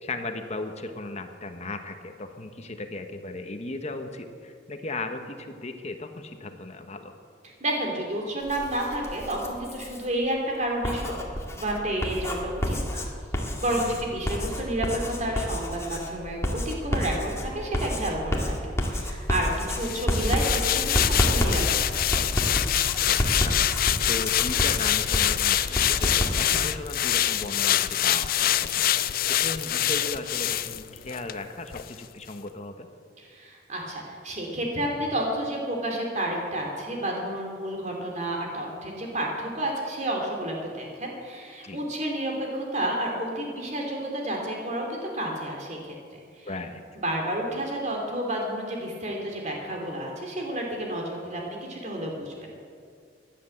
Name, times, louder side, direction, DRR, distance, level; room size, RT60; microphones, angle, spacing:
voice 1, 0.0-7.1 13.7-14.0 23.0-28.9 29.4-32.9 41.6-41.8 46.4-46.8, left 2 dB, 40° left, 6 dB, 1.1 m, -36 dB
voice 2, 7.6-11.2 11.5-13.0 13.6-22.2 33.2-45.9 46.4-46.5 46.9-52.5, right 1 dB, 40° right, 0 dB, 3.1 m, -30 dB
Writing, 8.4-10.0 10.7-26.7, equal, 15° left, 2.1 m, -29 dB
sound 1, 19.8-31.4 31.7-31.9, left 12 dB, 55° left, 0.5 m, -25 dB
15.5 x 10.5 x 7.8 m, 2.2 s
head